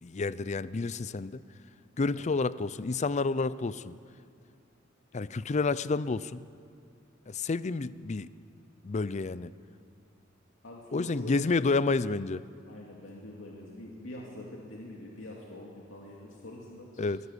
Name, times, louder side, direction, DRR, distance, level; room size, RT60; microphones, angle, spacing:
voice 1, 0.0-1.4 2.0-4.0 5.1-6.4 7.3-8.3 8.8-9.5 10.9-12.4 17.0-17.2, left 3 dB, 35° left, 17 dB, 0.5 m, -30 dB
voice 2, 10.6-11.4 12.7-17.1, left 1 dB, 85° left, -2 dB, 2.5 m, -45 dB
22.5 x 15.0 x 8.2 m, 2.3 s
head